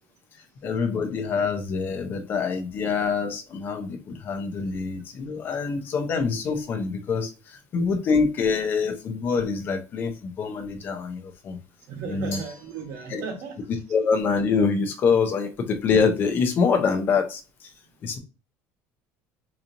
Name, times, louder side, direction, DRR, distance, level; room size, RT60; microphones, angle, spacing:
voice 1, 0.6-11.6 12.1-12.4 13.1-13.2 13.9-17.7 18.0-18.2, left 5 dB, 35° left, 0.7 m, -25 dB
voice 2, 11.9-13.6 18.1-18.2, right 5 dB, 55° right, 1.0 m, -36 dB
Glass, 12.3-13.5, left 3 dB, 55° left, 1.1 m, -43 dB
4.1 x 2.9 x 2.6 m
cardioid pair, 160°, 6 cm